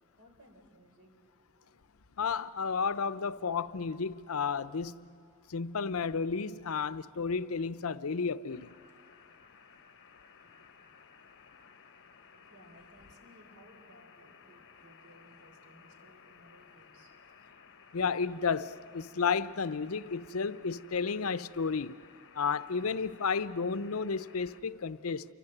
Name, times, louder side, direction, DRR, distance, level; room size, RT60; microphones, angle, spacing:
voice 1, 0.2-1.8 10.0-10.1 10.6-10.7 11.4-11.8 12.3-17.1, equal, 70° right, 4.0 m, -60 dB
voice 2, 2.2-5.1 5.5-8.7 17.9-22.0 22.3-25.2, left 5 dB, 80° left, 0.6 m, -32 dB
sound 1, 8.5-24.6, left 6 dB, 60° left, 1.2 m, -57 dB
29.0 x 24.5 x 7.9 m
head